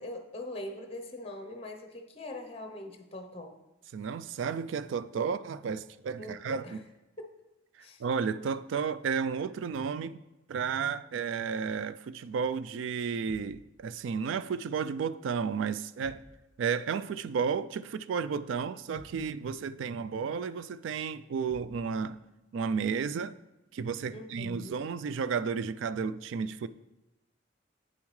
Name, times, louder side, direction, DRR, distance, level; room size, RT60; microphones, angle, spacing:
voice 1, 0.0-3.6 6.2-6.8 7.8-8.0 24.1-24.8, left 1 dB, 30° left, 0.7 m, -42 dB
voice 2, 3.9-6.8 8.0-10.2 10.5-16.2 16.6-22.2 22.5-23.3 23.7-26.7, right 6 dB, 80° right, 0.3 m, -32 dB
sound 1, 13.3-13.6 16.0-16.4 18.9-19.3 21.5-21.8, equal, 45° right, 2.1 m, -52 dB
8.7 x 7.0 x 3.2 m
head